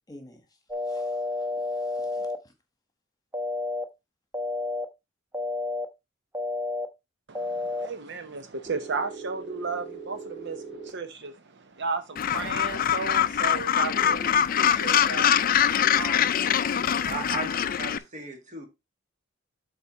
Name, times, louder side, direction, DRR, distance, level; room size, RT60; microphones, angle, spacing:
voice 1, 0.1-0.4 0.8-2.5, left 1 dB, 20° left, 1.4 m, -52 dB
sound 1, 0.7-2.4 3.3-3.8 4.3-4.8 5.3-5.8 6.3-6.8 7.3-7.9 8.7-10.9 13.9-14.1, left 2 dB, 10° right, 0.9 m, -32 dB
voice 2, 7.3-15.4 15.7-16.3, right 4 dB, 60° right, 0.8 m, -34 dB
Gull seagull, 12.2-18.0, left 9 dB, 45° left, 0.4 m, -23 dB
voice 3, 17.0-18.7, right 3 dB, 40° right, 1.9 m, -36 dB
8.0 x 4.3 x 4.2 m
head